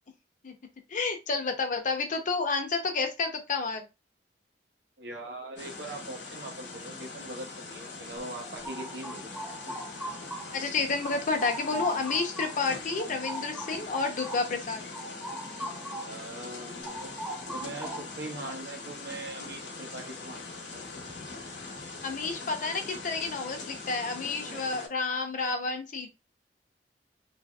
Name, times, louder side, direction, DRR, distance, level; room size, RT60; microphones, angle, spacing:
voice 1, 0.9-3.8 10.5-14.9 18.4-18.5 22.0-26.1, left 4 dB, 45° left, 5 dB, 0.6 m, -30 dB
voice 2, 5.0-9.3 16.0-17.1 17.5-20.4 20.7-20.8 24.5-24.7, right 2 dB, 80° right, 3 dB, 0.8 m, -41 dB
sound 1, 5.6-24.9, left 3 dB, 85° left, 0.9 m, -42 dB
sound 2, 8.2-10.7 11.0-16.2 16.5-18.3, right 1 dB, 5° right, 0.7 m, -40 dB
2.9 x 2.6 x 2.3 m, 0.25 s
head